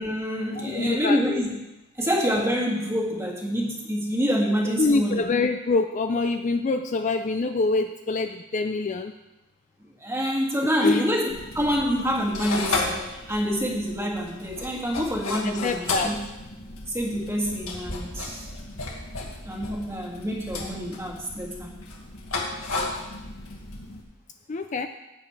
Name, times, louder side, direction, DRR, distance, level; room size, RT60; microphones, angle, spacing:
voice 1, 0.0-1.5 2.0-5.2 10.0-11.3 11.5-16.2 16.9-18.5 19.4-21.7, equal, 15° right, -2 dB, 1.8 m, -27 dB
voice 2, 0.5-1.4 4.8-9.1 10.6-11.1 15.4-16.2 24.5-24.9, left 3 dB, 35° left, 7 dB, 0.4 m, -25 dB
sound 1, 11.3-24.0, left 3 dB, 85° left, 1.9 m, -34 dB
15.0 x 8.9 x 3.2 m, 0.98 s
head